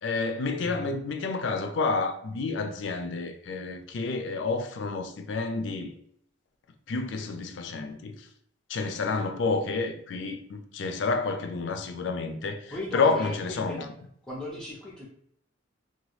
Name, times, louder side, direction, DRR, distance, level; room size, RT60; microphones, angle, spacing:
voice 1, 0.0-5.9 6.9-8.3 8.7-13.9, left 4 dB, 65° left, 0.4 m, -29 dB
voice 2, 0.6-0.9 12.7-13.9 14.2-15.1, left 1 dB, 5° left, 0.4 m, -37 dB
2.8 x 2.2 x 3.0 m
head